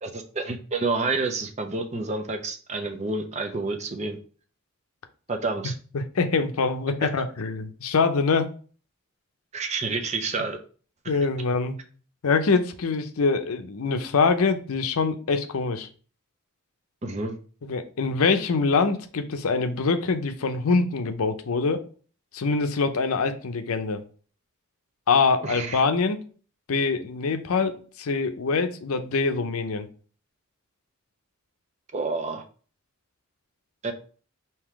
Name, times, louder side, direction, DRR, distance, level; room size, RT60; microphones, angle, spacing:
voice 1, 0.0-4.2 5.3-5.7 9.5-10.6 17.0-17.4 25.4-25.8 31.9-32.4 33.8-33.9, right 3 dB, 30° right, 5 dB, 0.6 m, -29 dB
voice 2, 5.9-8.5 11.1-11.8 12.2-15.9 17.6-21.8 22.3-24.0 25.1-26.2 26.7-29.9, left 4 dB, 80° left, 8 dB, 0.6 m, -24 dB
3.7 x 2.8 x 4.5 m, 0.41 s
head